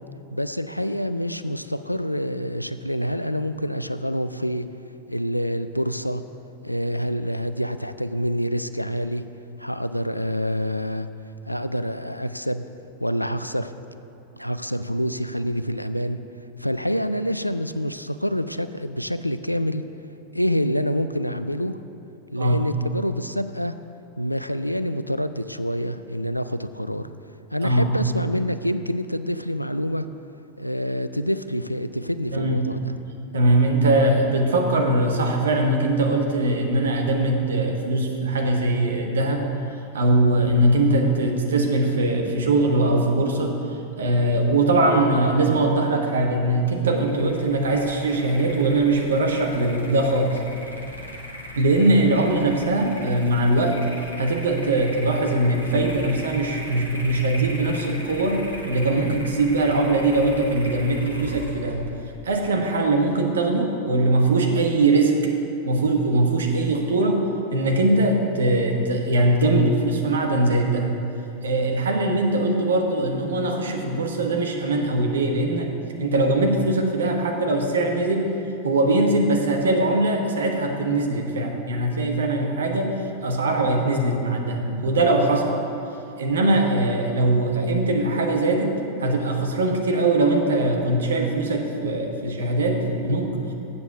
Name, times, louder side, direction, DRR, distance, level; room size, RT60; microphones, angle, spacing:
voice 1, 0.3-4.7 5.1-6.2 6.6-9.2 9.6-11.1 11.5-12.6 13.0-13.7 14.4-16.2 16.6-19.8 20.3-21.8 22.3-23.7 24.2-27.1 27.5-30.1 30.6-33.0, equal, 90° left, 11 dB, 0.3 m, -27 dB
voice 2, 32.3-32.7 33.3-39.5 39.9-43.5 44.0-50.4 51.6-53.8 54.2-61.8 62.2-65.1 65.6-70.9 71.4-75.7 76.0-78.3 78.6-85.6 86.2-93.4, right 2 dB, 65° right, 2 dB, 1.2 m, -21 dB
sound 1, 46.9-63.2, left 1 dB, 90° right, 1.3 m, -39 dB
8.0 x 7.0 x 6.6 m, 2.7 s
figure-of-eight pair, 90°, 0 cm